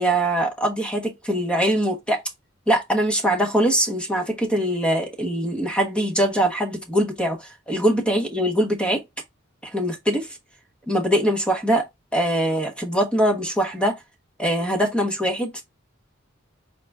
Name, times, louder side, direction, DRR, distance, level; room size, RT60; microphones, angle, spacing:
voice 1, 0.0-2.2 2.7-9.0 9.7-10.3 10.9-11.9 12.1-13.9 14.4-15.6, right 1 dB, 5° left, 1.1 m, -22 dB
4.6 x 3.9 x 2.3 m
head